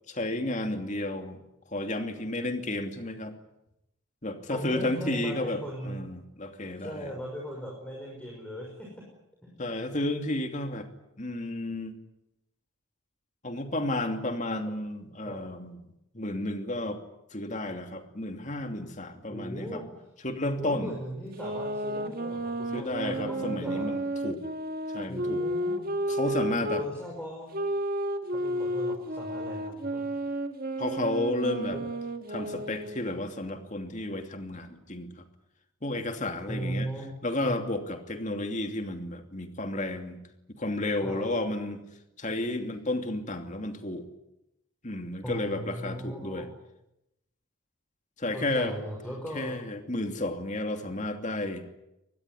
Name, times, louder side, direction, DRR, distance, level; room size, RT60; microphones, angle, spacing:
voice 1, 0.1-1.4 1.7-3.3 4.2-7.1 9.6-10.9 11.2-11.9 13.4-15.9 16.1-17.0 17.3-19.8 20.2-20.9 22.7-24.4 24.9-25.4 26.1-26.8 30.8-31.8 32.3-35.1 35.8-36.9 37.2-40.2 40.5-41.8 42.2-44.1 44.8-46.5 48.2-48.7 49.3-51.6, left 1 dB, 35° left, 6 dB, 2.8 m, -32 dB
voice 2, 4.5-6.0 6.8-8.9 9.4-9.5 15.3-15.4 19.3-19.9 20.6-23.9 25.1-26.0 26.8-27.5 28.3-30.1 31.7-31.8 36.5-37.1 37.4-37.5 41.0-41.2 45.2-46.5 48.3-49.6, equal, 5° left, -1 dB, 5.8 m, -38 dB
sound 1, 21.4-26.9 27.5-33.1, right 1 dB, 45° right, 1.9 m, -32 dB
24.5 x 20.5 x 10.0 m, 0.86 s
head